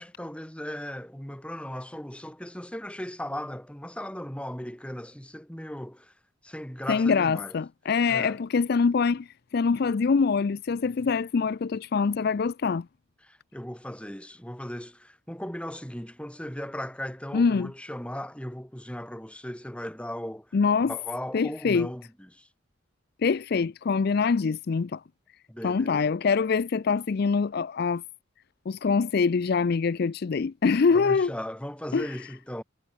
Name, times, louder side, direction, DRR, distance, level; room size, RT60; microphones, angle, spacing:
voice 1, 0.0-6.1 6.4-7.5 8.1-8.4 13.2-20.6 20.8-22.5 25.5-26.1 30.9-32.6, equal, 5° left, 2.1 m, -37 dB
voice 2, 6.9-9.3 9.5-12.9 17.3-17.7 20.5-20.9 21.3-21.9 23.2-25.0 25.6-28.0 28.7-31.3 31.9-32.1, left 5 dB, 50° left, 0.4 m, -24 dB
head